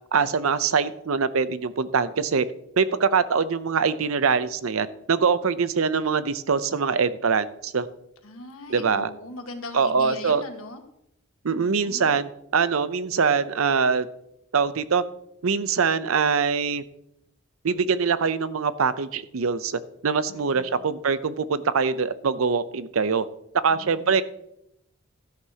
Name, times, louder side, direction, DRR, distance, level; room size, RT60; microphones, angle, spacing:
voice 1, 0.1-2.5 2.8-7.9 8.7-9.1 9.7-10.4 11.4-14.1 14.5-15.0 15.4-16.8 17.6-23.2 23.6-24.2, right 5 dB, 85° right, 14 dB, 0.6 m, -23 dB
voice 2, 8.2-10.8 11.5-12.1 20.3-20.8 23.7-24.2, left 2 dB, 90° left, 5 dB, 1.6 m, -40 dB
13.0 x 11.0 x 2.9 m, 0.79 s
head